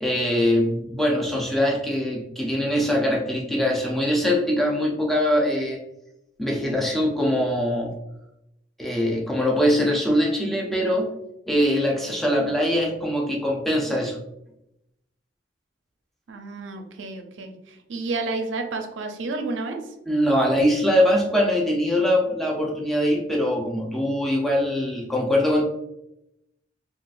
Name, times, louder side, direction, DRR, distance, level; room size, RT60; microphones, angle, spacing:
voice 1, 0.0-5.8 6.4-7.9 8.8-11.1 11.5-14.2 20.1-25.7, equal, ahead, -2 dB, 0.5 m, -22 dB
voice 2, 16.3-19.9, right 3 dB, 80° right, 5 dB, 0.5 m, -31 dB
3.7 x 2.4 x 2.4 m, 0.85 s
head